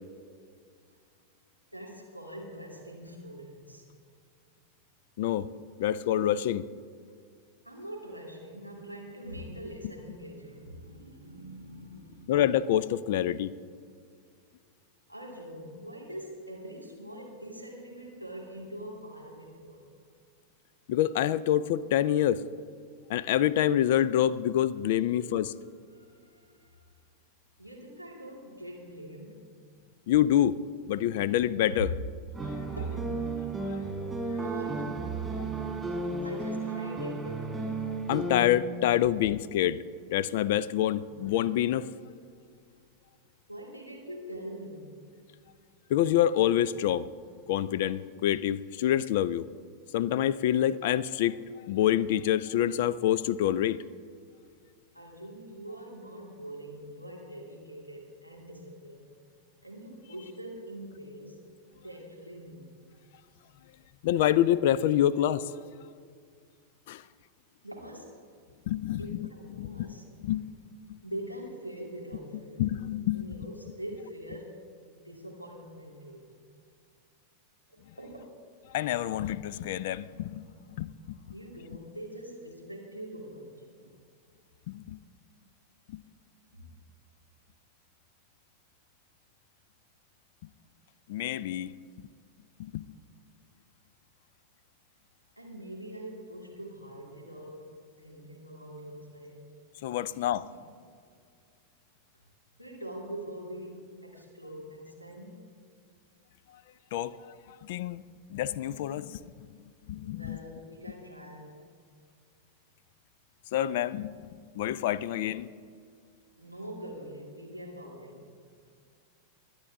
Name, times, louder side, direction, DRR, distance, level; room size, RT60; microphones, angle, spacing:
voice 1, 1.7-3.9 5.2-5.4 7.6-12.3 15.1-19.8 25.9-26.8 27.6-29.4 32.8-33.2 34.3-35.2 36.2-37.7 43.5-44.9 54.9-59.1 59.6-61.4 61.8-62.8 67.6-68.2 69.0-70.0 71.0-72.7 73.1-74.6 74.9-76.3 77.7-78.4 81.3-83.9 86.5-86.7 95.4-97.7 98.0-99.5 100.1-100.2 100.5-100.6 102.6-105.4 110.0-111.6 116.4-118.3, right 1 dB, 90° left, 2.7 m, -43 dB
voice 2, 5.2-5.5 5.8-6.7 12.3-13.5 20.9-22.4 23.1-25.5 30.1-30.6 30.9-31.9 33.7-34.1 38.1-39.8 40.1-41.9 45.9-47.1 47.5-49.5 49.9-51.4 51.6-53.8 64.0-65.5 66.9-67.0 68.7-69.2 69.5-70.0 70.2-70.5 72.6-73.2 78.7-80.4 80.8-81.2 84.7-85.0 85.9-86.0 91.1-91.7 92.6-92.8 99.8-100.5 106.9-107.2 107.6-108.0 108.3-109.2 109.9-110.4 113.5-114.1 114.6-115.5, left 11 dB, 50° left, 0.4 m, -27 dB
sound 1, 32.3-38.5, right 3 dB, 10° right, 2.3 m, -33 dB
22.5 x 9.6 x 3.6 m
figure-of-eight pair, 90°, 0 cm